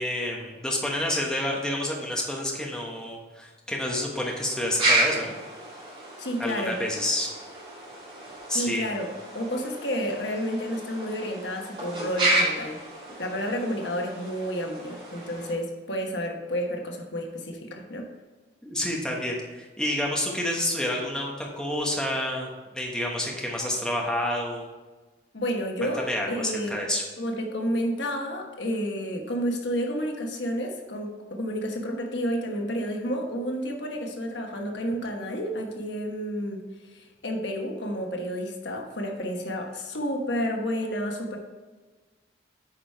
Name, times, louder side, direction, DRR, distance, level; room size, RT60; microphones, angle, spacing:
voice 1, 0.0-5.3 6.4-7.3 8.5-8.9 18.6-22.5 22.7-24.7 26.1-27.0, left 1 dB, 5° left, -2 dB, 1.1 m, -29 dB
sound 1, 4.0-15.5, right 1 dB, 30° right, 2.4 m, -31 dB
voice 2, 6.2-6.7 8.5-9.1 9.3-12.8 13.2-18.0 25.3-26.7 27.2-36.6 36.9-41.4, equal, 80° left, 2 dB, 1.2 m, -30 dB
8.8 x 4.9 x 4.6 m, 1.3 s
head